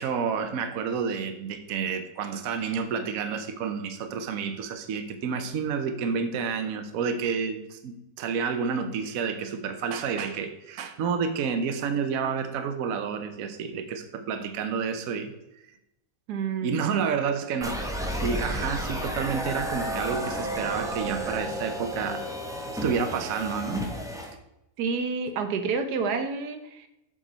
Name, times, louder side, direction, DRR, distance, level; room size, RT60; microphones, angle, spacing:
voice 1, 0.0-15.3 16.6-17.8 18.2-22.3 22.8-23.8, right 6 dB, 65° right, 7 dB, 1.2 m, -29 dB
voice 2, 16.3-16.8 24.8-26.9, right 5 dB, 85° right, 7 dB, 1.4 m, -29 dB
sound 1, 17.6-24.3, equal, 5° right, 0.7 m, -32 dB
7.3 x 6.4 x 4.0 m, 0.88 s
omnidirectional pair, 1.7 m